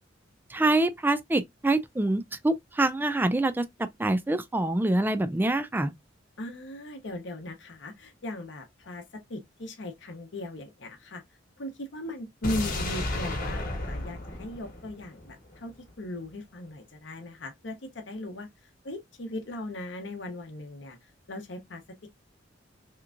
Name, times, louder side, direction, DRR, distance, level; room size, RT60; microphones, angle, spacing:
voice 1, 0.5-5.9, right 2 dB, 10° right, 0.3 m, -26 dB
voice 2, 6.4-9.0 9.3-11.2 11.6-18.5 18.8-21.0 21.3-22.1, left 1 dB, 70° left, 0.7 m, -38 dB
sound 1, 12.4-15.6 15.9-16.0, left 2 dB, 45° left, 1.0 m, -33 dB
3.3 x 3.0 x 2.4 m
head